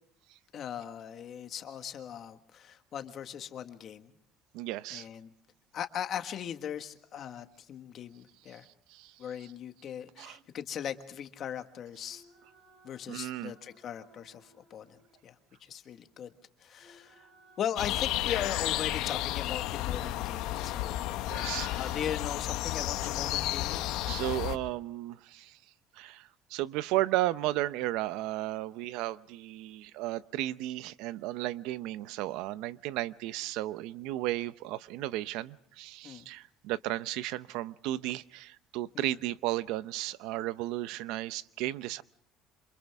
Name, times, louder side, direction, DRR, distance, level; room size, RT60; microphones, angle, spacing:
voice 1, 0.5-4.1 4.9-5.3 5.7-8.6 9.2-12.2 12.8-15.0 15.2-15.3 15.7-16.3 16.6-17.1 17.6-21.1 21.7-23.8 36.0-36.2 38.9-39.1, left 9 dB, 45° left, 8 dB, 1.6 m, -39 dB
voice 2, 4.5-5.1 8.5-8.6 8.9-9.1 9.4-9.5 10.2-10.4 13.1-13.5 21.3-21.9 24.0-25.6 26.0-42.0, right 16 dB, 75° right, 16 dB, 0.7 m, -34 dB
sound 1, 9.8-11.3 11.9-15.7 16.6-18.7, right 2 dB, 50° right, 7.3 m, -63 dB
sound 2, 17.8-24.6, left 14 dB, 75° left, 1.2 m, -32 dB
27.5 x 27.0 x 3.6 m, 0.68 s
cardioid pair, 140°, 0 cm